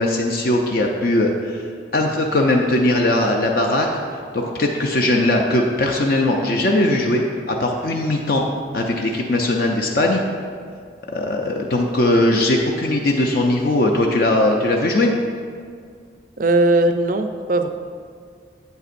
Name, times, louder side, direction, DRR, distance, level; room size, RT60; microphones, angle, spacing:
voice 1, 0.0-1.6 1.9-3.9 4.3-8.4 8.7-10.2 11.1-15.1, left 1 dB, 55° left, 1 dB, 0.5 m, -19 dB
voice 2, 16.4-17.7, right 2 dB, 50° right, 8 dB, 0.4 m, -18 dB
8.3 x 8.0 x 2.5 m, 2.1 s
head